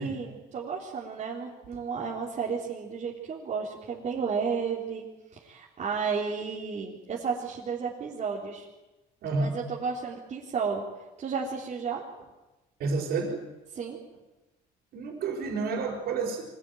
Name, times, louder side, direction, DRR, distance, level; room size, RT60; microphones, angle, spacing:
voice 1, 0.0-5.1 5.3-8.7 9.3-10.8 11.2-12.1 13.7-14.0, right 5 dB, 45° right, -4 dB, 3.6 m, -32 dB
voice 2, 9.2-9.5 12.8-13.4 14.9-16.4, right 4 dB, 70° right, -4 dB, 5.1 m, -29 dB
24.5 x 17.5 x 9.3 m, 1.1 s
cardioid pair, 110°, 17 cm